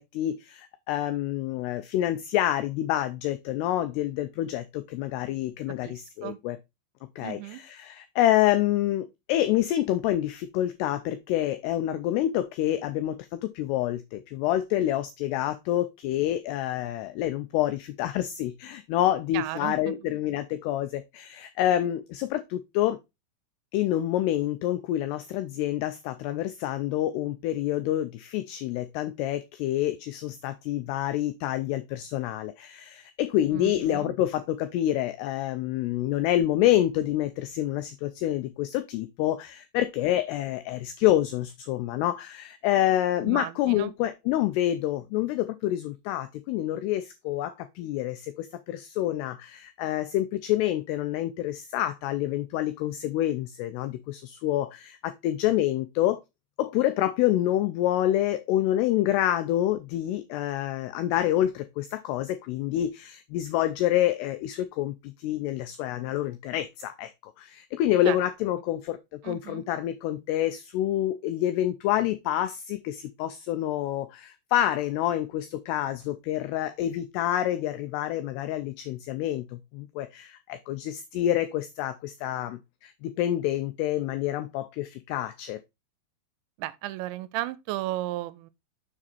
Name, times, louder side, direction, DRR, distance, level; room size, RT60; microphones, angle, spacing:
voice 1, 0.0-6.6 7.2-7.4 7.7-23.0 23.7-56.2 56.6-69.0 69.2-85.6, left 13 dB, 90° left, 2.3 m, -27 dB
voice 2, 5.7-6.4 7.2-7.6 19.3-20.1 33.5-34.2 43.2-43.9 68.1-68.2 69.2-69.7 86.6-88.5, right 16 dB, 85° right, 2.8 m, -35 dB
6.5 x 4.9 x 4.2 m
omnidirectional pair, 5.3 m